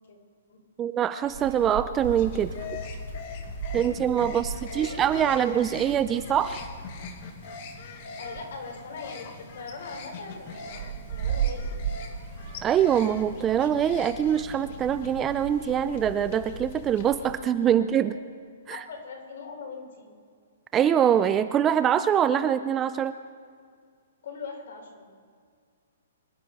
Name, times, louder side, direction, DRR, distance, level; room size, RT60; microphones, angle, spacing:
voice 1, 0.8-2.5 3.7-6.7 12.6-18.1 18.7-18.8 20.7-23.2, right 9 dB, 15° right, 12 dB, 0.3 m, -24 dB
Meow, 1.2-15.2, right 8 dB, 45° right, 1.9 m, -38 dB
sound 1, 2.0-17.3, left 3 dB, 35° left, 1.4 m, -41 dB
voice 2, 4.4-5.1 8.2-11.7 18.0-18.1 18.7-20.1 24.2-25.1, left 4 dB, 60° left, 2 dB, 4.4 m, -41 dB
24.5 x 11.0 x 4.7 m, 2.1 s
hypercardioid pair, 175°, 0 cm